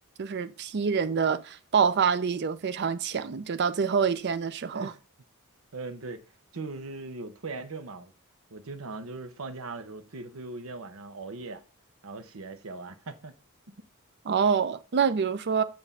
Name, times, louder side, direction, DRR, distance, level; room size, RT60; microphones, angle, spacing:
voice 1, 0.2-4.9 14.2-15.6, right 6 dB, 50° right, 0.5 m, -26 dB
voice 2, 5.7-8.1 8.5-11.6 12.0-13.3, right 3 dB, 75° right, 0.8 m, -39 dB
7.0 x 2.6 x 5.5 m
head